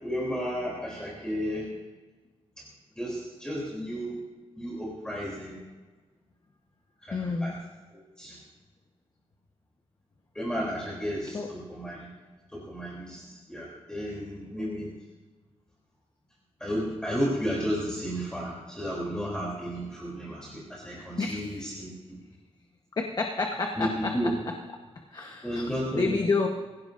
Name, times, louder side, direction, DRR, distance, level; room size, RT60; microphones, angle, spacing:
voice 1, 0.0-1.7 3.0-4.2 4.6-5.6 7.0-7.5 7.9-8.4 10.3-12.0 12.5-14.9 16.6-21.9 23.8-24.3 25.4-26.2, equal, 5° left, -5 dB, 3.3 m, -33 dB
voice 2, 7.1-7.6 11.3-11.5 21.2-21.7 23.0-24.5 25.1-26.5, left 4 dB, 40° left, 2 dB, 1.2 m, -30 dB
24.0 x 16.5 x 2.6 m, 1.3 s
wide cardioid pair, 170°, 11 cm